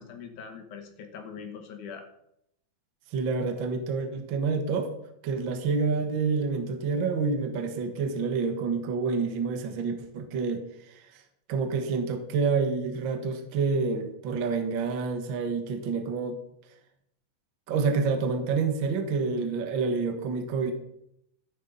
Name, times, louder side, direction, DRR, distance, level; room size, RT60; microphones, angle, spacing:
voice 1, 0.0-2.1, left 6 dB, 60° left, 5 dB, 2.4 m, -42 dB
voice 2, 3.1-4.9 5.2-11.2 11.5-16.4 17.7-20.7, right 4 dB, 75° right, 6 dB, 1.1 m, -28 dB
14.0 x 11.5 x 4.1 m, 0.77 s
omnidirectional pair, 4.4 m